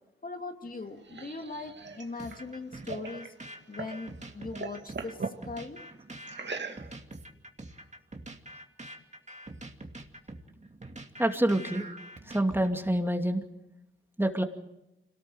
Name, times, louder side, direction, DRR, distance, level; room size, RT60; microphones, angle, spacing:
voice 1, 0.2-3.3 3.7-5.2 5.4-5.8, left 3 dB, 40° left, 4 dB, 2.4 m, -40 dB
sound 1, 0.7-4.0 4.4-5.4 6.3-7.2, right 4 dB, 60° right, 2.2 m, -40 dB
sound 2, 2.2-13.0, right 1 dB, 35° right, 2.5 m, -45 dB
voice 2, 11.2-11.9 12.3-13.4 14.2-14.4, right 1 dB, 10° right, 4 dB, 2.5 m, -26 dB
26.0 x 18.5 x 7.9 m, 0.90 s
cardioid pair, 60°, 21 cm